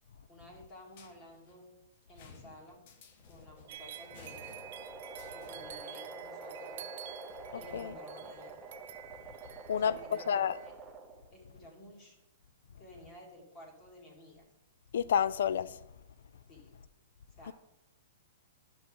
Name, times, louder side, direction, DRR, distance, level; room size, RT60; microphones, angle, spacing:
voice 1, 0.3-1.7 2.1-2.8 3.3-4.4 5.3-6.9 7.5-8.6 9.7-10.7 11.3-12.2 12.8-14.4 16.5-16.7 17.4-17.5, left 1 dB, 30° left, 2.3 m, -53 dB
sound 1, 0.9-5.9, left 5 dB, 50° left, 1.0 m, -57 dB
sound 2, 3.1-11.4, right 3 dB, 15° right, 0.9 m, -47 dB
sound 3, 3.7-10.7, right 12 dB, 60° right, 0.5 m, -50 dB
voice 2, 7.5-7.9 9.7-10.0 10.3-10.6 14.9-15.8 17.5-17.6, left 8 dB, 75° left, 0.4 m, -30 dB
9.8 x 6.1 x 3.7 m
hypercardioid pair, 140°, 0 cm